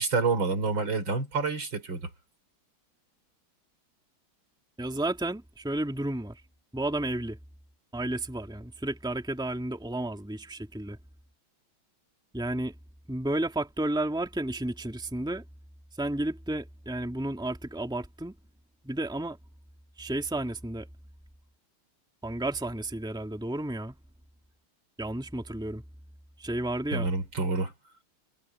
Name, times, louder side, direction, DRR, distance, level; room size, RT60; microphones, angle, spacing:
voice 1, 0.0-2.1 26.9-27.7, right 4 dB, 60° right, 4.9 m, -28 dB
voice 2, 4.8-6.4 6.7-7.4 7.9-11.0 12.3-12.7 13.1-15.4 16.0-18.4 18.8-19.4 20.0-20.9 22.2-24.0 25.0-25.8 26.4-27.1, right 1 dB, ahead, 2.6 m, -32 dB
omnidirectional pair, 2.3 m